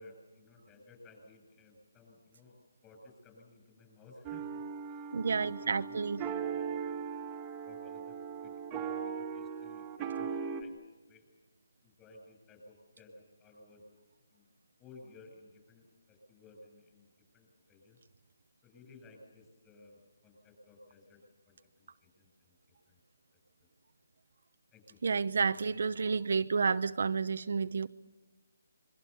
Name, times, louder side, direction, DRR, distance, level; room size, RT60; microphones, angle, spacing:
voice 1, 0.0-6.9 7.6-8.2 8.4-10.8 11.1-11.3 11.8-13.8 14.3-14.5 14.8-17.1 17.3-18.0 18.6-21.2 21.5-22.6 22.9-23.0 24.7-25.0, left 2 dB, 15° left, 2 dB, 8.0 m, -57 dB
sound 1, 4.2-10.6, right 7 dB, 15° right, 2.2 m, -39 dB
voice 2, 5.1-6.2 25.0-27.9, right 5 dB, 55° right, 10 dB, 0.9 m, -30 dB
27.5 x 24.0 x 7.1 m, 1.1 s
hypercardioid pair, 165°, 0 cm